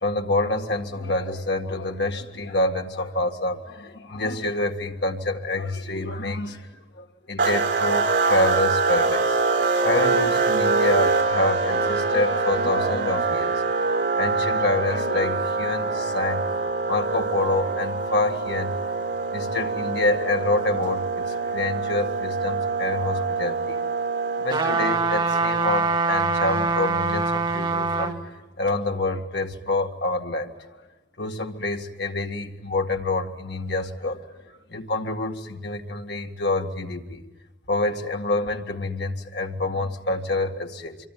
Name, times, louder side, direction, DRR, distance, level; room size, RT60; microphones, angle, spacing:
voice 1, 0.0-6.7 6.9-9.4 9.8-13.6 14.2-16.4 16.9-18.8 19.3-23.9 24.4-28.3 28.6-30.8 31.2-37.2 37.7-41.0, left 2 dB, 75° left, 3 dB, 2.0 m, -27 dB
sound 1, 7.4-25.2, right 4 dB, 80° right, 3.4 m, -24 dB
sound 2, 24.5-28.2 28.7-28.8, right 4 dB, 25° right, 1.9 m, -23 dB
25.0 x 24.5 x 9.3 m, 1.1 s
head